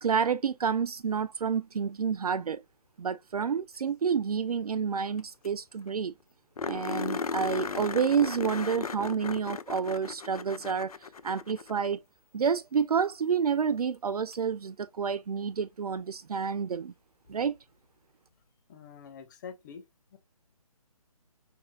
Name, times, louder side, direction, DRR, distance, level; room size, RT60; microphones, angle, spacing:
voice 1, 0.0-2.6 3.0-6.1 6.7-12.0 12.3-16.9 17.3-17.5, right 6 dB, 75° right, 0.4 m, -29 dB
sound 1, 5.2-5.3 5.4-5.5 5.9-6.0 6.6-12.0 14.3-14.4 17.3-17.4, left 5 dB, 75° left, 0.5 m, -36 dB
voice 2, 18.7-19.8 20.1-20.2, left 6 dB, 30° left, 1.0 m, -45 dB
4.7 x 3.5 x 2.2 m
figure-of-eight pair, 145°, 19 cm